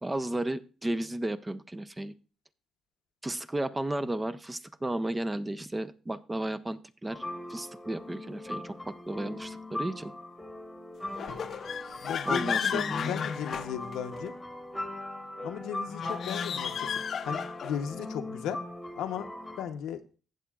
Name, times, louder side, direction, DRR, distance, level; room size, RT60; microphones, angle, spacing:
voice 1, 0.0-2.1 3.2-7.2 7.5-10.1 12.3-13.1, right 1 dB, 15° right, 13 dB, 0.6 m, -34 dB
sound 1, 7.1-19.6, left 1 dB, 5° left, 1.4 m, -40 dB
sound 2, 11.1-14.3 15.9-17.9, left 7 dB, 60° left, 0.6 m, -33 dB
voice 2, 12.0-14.3 15.4-16.9 17.2-18.6 19.0-19.3 19.6-20.0, left 9 dB, 90° left, 8 dB, 0.8 m, -35 dB
15.0 x 7.6 x 2.3 m, 0.36 s
cardioid pair, 90°, 0 cm